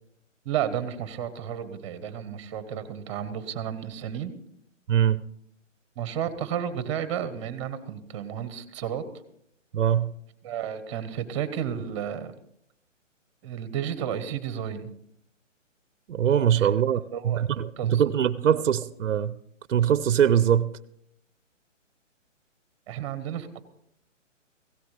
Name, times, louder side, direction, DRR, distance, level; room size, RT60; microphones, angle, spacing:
voice 1, 0.4-4.3 6.0-9.0 10.4-12.3 13.4-14.9 16.6-16.7 17.1-17.4 17.8-18.0 22.9-23.6, right 9 dB, 25° right, 1.1 m, -32 dB
voice 2, 4.9-5.2 9.7-10.2 16.1-19.4 19.7-20.8, right 9 dB, 70° right, 0.6 m, -22 dB
17.0 x 16.0 x 3.3 m
hypercardioid pair, 155°, 38 cm